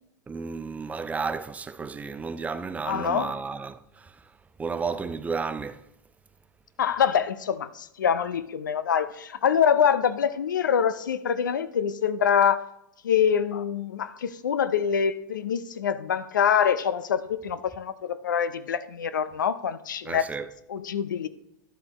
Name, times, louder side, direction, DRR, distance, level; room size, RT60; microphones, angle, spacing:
voice 1, 0.3-4.1 4.6-5.8 20.0-20.5, right 5 dB, 15° right, 0.4 m, -32 dB
voice 2, 2.8-3.4 6.8-12.6 13.0-20.3 20.7-21.3, left 8 dB, 85° left, 0.6 m, -25 dB
11.5 x 7.7 x 3.0 m
hypercardioid pair, 105°, 10 cm